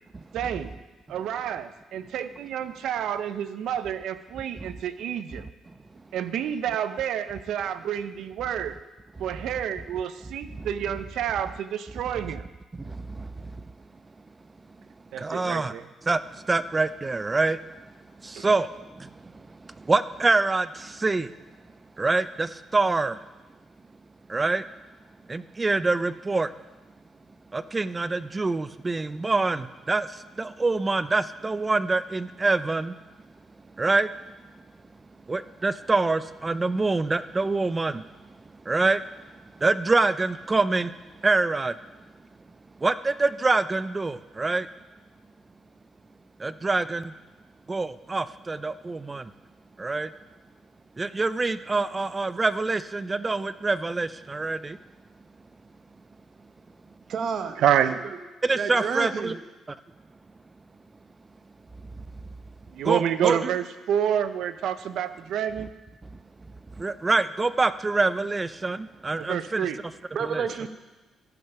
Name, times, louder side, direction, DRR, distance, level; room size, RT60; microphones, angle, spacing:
voice 1, 0.3-0.7 1.1-5.5 6.1-8.8 9.2-12.4 15.1-15.9 18.4-18.5 57.6-58.0 62.7-65.7 69.2-69.8, right 9 dB, 80° right, 12 dB, 0.6 m, -28 dB
voice 2, 12.8-13.5 15.2-15.7 16.1-17.6 18.2-21.3 22.0-23.2 24.3-24.6 25.3-26.5 27.5-33.0 33.8-34.1 35.3-38.3 38.7-39.0 39.6-40.9 41.2-41.7 42.8-44.7 46.4-47.1 47.7-49.3 49.8-50.1 51.0-54.8 58.4-59.3 62.0-62.1 62.8-63.3 66.1-66.2 66.8-69.7 70.2-70.4, right 3 dB, 25° right, 14 dB, 0.4 m, -26 dB
voice 3, 57.1-57.6 57.8-57.9 58.6-59.3 63.3-63.5 70.1-70.7, right 6 dB, 60° right, 8 dB, 1.0 m, -29 dB
14.5 x 5.5 x 5.9 m, 1.1 s
cardioid pair, 90°, 0 cm